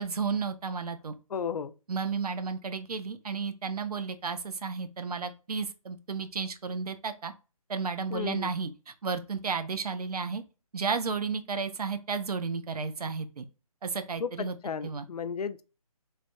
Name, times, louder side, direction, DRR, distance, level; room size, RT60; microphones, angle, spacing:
voice 1, 0.0-1.1 1.9-7.3 7.7-10.4 10.7-13.4 13.8-14.6 14.8-15.1, right 5 dB, 85° right, 0.6 m, -33 dB
voice 2, 1.3-1.7 8.1-8.5 14.2-15.6, left 6 dB, 85° left, 0.4 m, -34 dB
3.2 x 2.2 x 2.6 m
hypercardioid pair, 160°, 19 cm